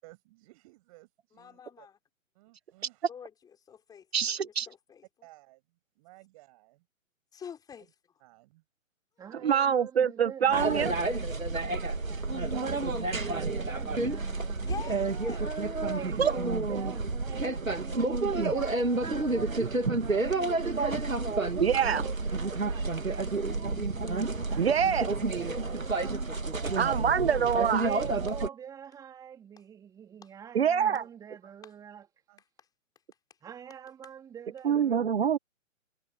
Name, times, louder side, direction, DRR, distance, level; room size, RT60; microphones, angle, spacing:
voice 1, 0.0-1.9 2.3-3.1 5.2-5.6 6.0-6.8 8.2-8.6 11.5-12.5 14.4-14.8 15.0-15.6 17.5-18.1 20.4-20.6 26.1-27.1 32.3-32.4, right 21 dB, 25° right, 7.0 m, -53 dB
voice 2, 1.3-2.0 3.1-3.3 3.7-5.0 7.3-7.9 9.2-9.4 14.6-15.5, left 7 dB, 10° left, 6.3 m, -46 dB
voice 3, 4.1-4.7 9.4-10.9 16.2-16.3 21.6-22.0 24.6-25.1 26.8-27.9 30.5-31.0 34.6-35.4, right 8 dB, 50° right, 1.9 m, -25 dB
voice 4, 9.2-10.8 12.3-14.8 15.9-20.4 21.8-26.2 27.8-32.1 33.4-35.1, right 8 dB, 10° right, 2.8 m, -45 dB
sound 1, 10.5-28.5, right 3 dB, 75° right, 2.8 m, -30 dB
figure-of-eight pair, 135°, 40 cm